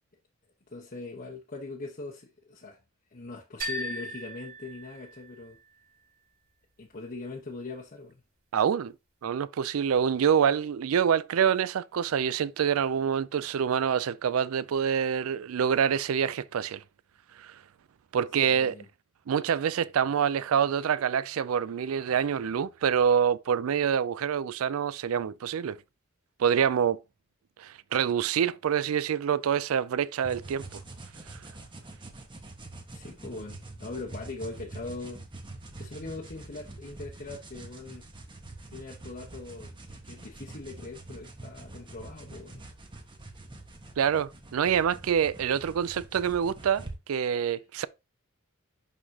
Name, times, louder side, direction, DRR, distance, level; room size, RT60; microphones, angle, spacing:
voice 1, 0.7-2.8 3.1-5.6 6.8-8.2 18.4-18.9 32.9-35.2 35.8-38.1 38.7-42.6 47.5-47.6, left 3 dB, 45° left, 1.1 m, -41 dB
sound 1, 3.6-5.5, right 1 dB, 45° right, 4.7 m, -37 dB
voice 2, 8.5-8.9 9.2-16.8 17.4-17.5 18.1-18.7 19.3-25.8 26.4-27.0 27.6-30.8 44.0-47.9, right 8 dB, 75° right, 0.4 m, -26 dB
sound 2, 30.2-47.0, right 2 dB, 25° right, 1.3 m, -45 dB
11.0 x 4.0 x 2.8 m
head